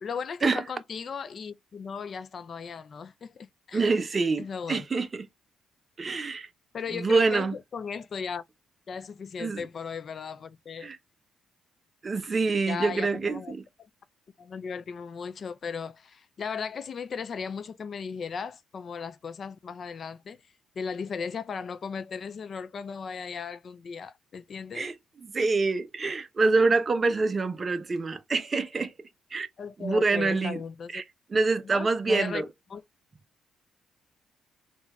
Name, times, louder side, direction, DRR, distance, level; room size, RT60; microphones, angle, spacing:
voice 1, 0.0-3.9 4.4-4.9 6.7-8.4 8.9-10.9 12.7-13.5 14.4-20.4 20.8-24.9 29.6-31.0 31.6-32.8, left 6 dB, 50° left, 0.4 m, -36 dB
voice 2, 3.7-5.3 6.0-6.5 6.9-7.5 9.4-9.6 10.8-11.0 12.0-13.6 24.7-24.9 25.2-29.5 29.8-30.6 30.9-31.0 31.3-32.5, right 3 dB, 35° right, 0.7 m, -26 dB
3.8 x 2.4 x 4.0 m
cardioid pair, 90°, 0 cm